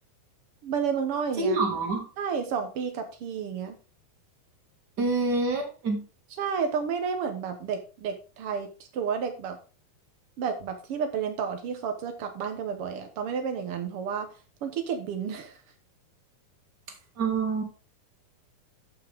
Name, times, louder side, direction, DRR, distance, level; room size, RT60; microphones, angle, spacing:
voice 1, 0.6-1.6 2.2-3.8 6.4-9.6 10.4-14.3 14.6-15.6, right 6 dB, 85° right, 6 dB, 1.2 m, -31 dB
voice 2, 1.4-2.1 5.0-6.0 17.2-17.6, right 3 dB, 35° right, 3 dB, 2.2 m, -26 dB
13.0 x 5.9 x 3.6 m, 0.34 s
omnidirectional pair, 4.2 m